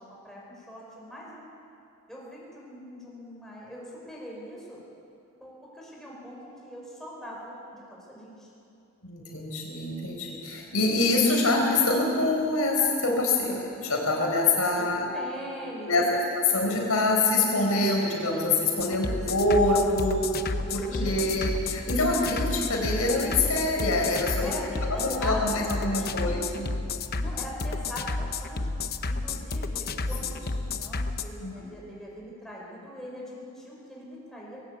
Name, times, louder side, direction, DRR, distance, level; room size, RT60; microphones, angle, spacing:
voice 1, 0.0-1.4 2.1-4.8 5.4-8.5 14.8-16.3 19.1-19.3 20.7-21.5 24.4-26.7 27.2-28.6 29.1-34.6, equal, ahead, -5 dB, 5.4 m, -41 dB
voice 2, 9.0-15.1 15.9-16.0 16.5-20.2 20.7-24.5 24.8-26.7 30.2-30.3 31.4-31.6, left 2 dB, 85° left, 0 dB, 4.4 m, -25 dB
sound 1, 18.8-31.2, left 3 dB, 45° left, 0.8 m, -31 dB
20.5 x 17.5 x 8.5 m, 2.6 s
head